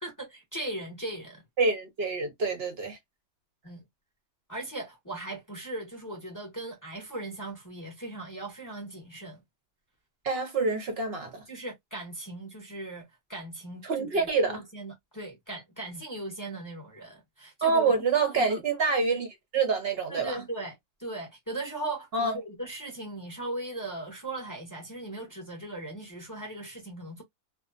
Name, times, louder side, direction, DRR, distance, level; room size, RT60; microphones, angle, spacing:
voice 1, 0.0-1.4 3.6-3.8 4.5-9.4 11.5-17.9 18.4-18.6 20.1-20.7 21.0-27.2, right 2 dB, 20° left, 0.5 m, -38 dB
voice 2, 1.6-3.0 10.2-11.4 13.8-14.6 17.6-19.3 19.5-20.4 22.1-22.4, right 4 dB, 60° right, 0.6 m, -26 dB
2.6 x 2.1 x 2.4 m
omnidirectional pair, 1.7 m